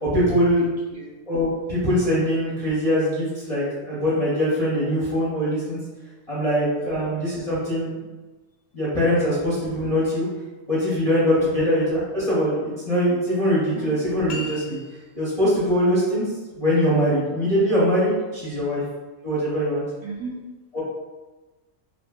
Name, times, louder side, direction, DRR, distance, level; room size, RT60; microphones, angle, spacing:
voice 1, 0.0-0.7 1.3-5.8 6.3-8.0 8.7-10.3 10.7-14.8 15.2-18.8 19.2-19.8 20.7-20.8, equal, 35° left, -9 dB, 0.6 m, -22 dB
voice 2, 0.6-1.1 6.8-7.0 11.4-11.6 13.6-13.9 18.4-18.7 20.0-20.4, right 2 dB, 60° right, -5 dB, 0.9 m, -37 dB
sound 1, 14.3-15.4, left 3 dB, 75° left, 0.9 m, -37 dB
2.7 x 2.5 x 2.2 m, 1.2 s
omnidirectional pair, 1.4 m